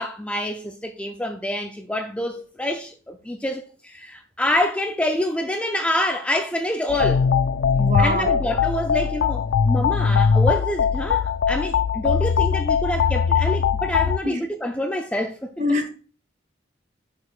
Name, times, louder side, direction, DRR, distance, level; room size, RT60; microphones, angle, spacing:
voice 1, 0.0-7.2 8.0-15.5, left 1 dB, 5° left, 0.4 m, -27 dB
sound 1, 6.9-14.2, left 6 dB, 90° left, 0.3 m, -21 dB
voice 2, 7.8-8.4 14.2-14.4 15.6-15.9, left 1 dB, 40° right, 1.3 m, -24 dB
11.0 x 4.8 x 2.4 m
head